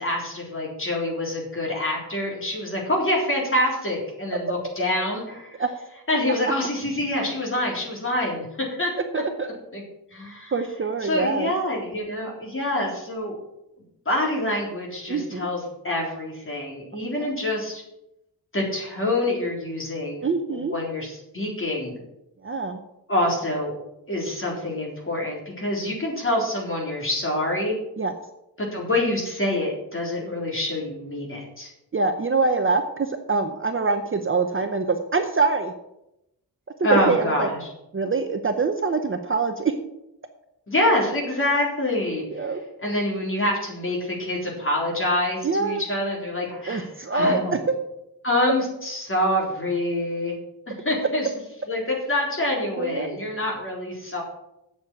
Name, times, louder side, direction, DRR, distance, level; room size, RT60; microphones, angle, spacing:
voice 1, 0.0-5.6 6.1-8.5 8.8-8.9 9.7-9.8 10.1-10.5 11.0-13.4 14.1-17.8 18.5-22.0 23.1-23.7 24.1-27.8 28.6-31.7 36.8-37.7 40.7-42.2 42.8-46.9 47.1-47.5 48.2-50.4 50.7-51.3 51.7-54.2, left 1 dB, 30° left, -2 dB, 3.7 m, -26 dB
voice 2, 9.1-9.5 10.5-11.5 15.1-15.5 20.2-20.7 22.4-22.8 28.0-28.1 31.9-35.7 36.9-37.5 37.9-39.7 42.3-42.6 45.4-45.8 46.7-47.4 52.8-53.1, right 4 dB, 30° right, 6 dB, 0.8 m, -24 dB
8.1 x 7.0 x 8.4 m, 0.86 s
wide cardioid pair, 130°, 40 cm